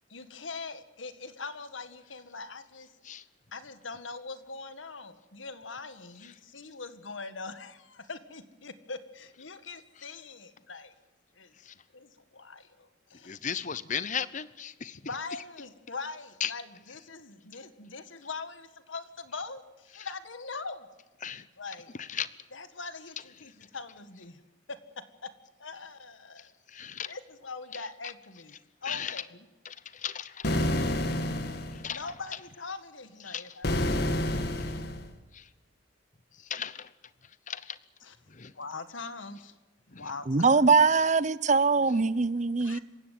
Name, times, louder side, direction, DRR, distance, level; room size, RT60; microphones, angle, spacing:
voice 1, 0.1-2.9 3.5-10.9 11.4-11.5 11.9-13.4 15.1-20.9 21.6-21.9 22.5-24.4 24.7-24.8 25.2-25.3 25.6-26.5 27.1-28.6 28.8-29.5 31.9-34.4 38.0-38.2 38.5-39.6 39.9-40.6 42.6-42.8, left 4 dB, 90° left, 1.9 m, -42 dB
voice 2, 13.2-15.0 16.4-16.5 21.2-21.4 22.0-22.3 26.7-27.1 28.9-29.2 29.6-32.0 33.3-33.4 34.6-34.8 35.3-35.4 36.5-36.9 37.5-37.8 38.3-38.5 39.9-40.0 42.7-42.8, left 8 dB, 40° left, 0.9 m, -36 dB
sound 1, 30.4-31.9 33.6-35.1, left 1 dB, 55° left, 2.0 m, -29 dB
voice 3, 40.3-42.8, right 4 dB, 40° right, 0.7 m, -22 dB
27.0 x 16.0 x 9.4 m
head